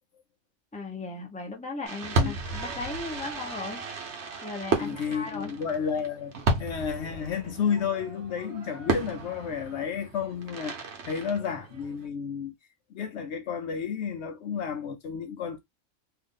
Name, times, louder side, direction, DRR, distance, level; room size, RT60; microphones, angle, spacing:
voice 1, 0.7-3.8 4.4-5.5, left 3 dB, 5° left, 0.7 m, -37 dB
Fireworks, 1.8-12.1, right 3 dB, 65° right, 1.1 m, -33 dB
voice 2, 4.7-12.5 12.9-15.6, left 7 dB, 65° left, 0.8 m, -32 dB
2.7 x 2.5 x 3.6 m
omnidirectional pair, 1.3 m